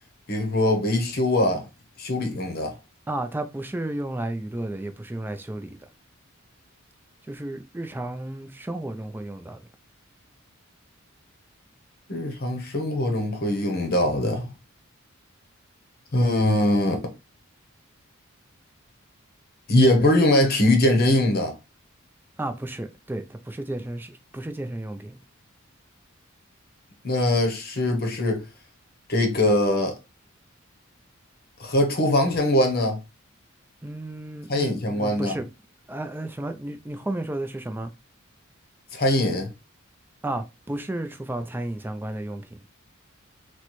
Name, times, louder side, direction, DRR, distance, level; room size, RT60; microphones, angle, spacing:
voice 1, 0.3-1.6 2.0-2.7 12.1-14.5 16.1-17.0 19.7-21.5 27.0-28.4 29.1-29.9 31.6-33.0 34.5-35.4 38.9-39.5, left 1 dB, 45° left, 0.8 m, -22 dB
voice 2, 3.1-5.8 7.3-9.6 22.4-25.2 33.8-35.5 35.9-37.9 40.2-42.6, right 1 dB, 10° right, 0.3 m, -33 dB
4.2 x 2.2 x 3.0 m
head